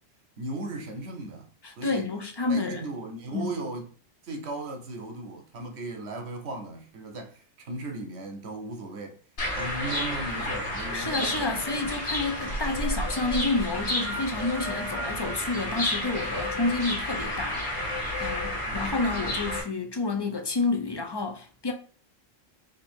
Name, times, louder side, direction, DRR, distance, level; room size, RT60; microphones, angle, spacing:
voice 1, 0.4-1.5 1.8-2.1 2.5-3.9 4.2-9.2 9.5-11.5 11.8-11.9 18.7-19.0, right 2 dB, 80° right, 1.1 m, -37 dB
voice 2, 1.6-2.8 3.3-3.6 10.9-21.7, left 3 dB, 35° left, 0.4 m, -30 dB
sound 1, 9.4-19.6, left 1 dB, 60° left, 1.9 m, -31 dB
3.9 x 2.7 x 4.3 m
omnidirectional pair, 1.1 m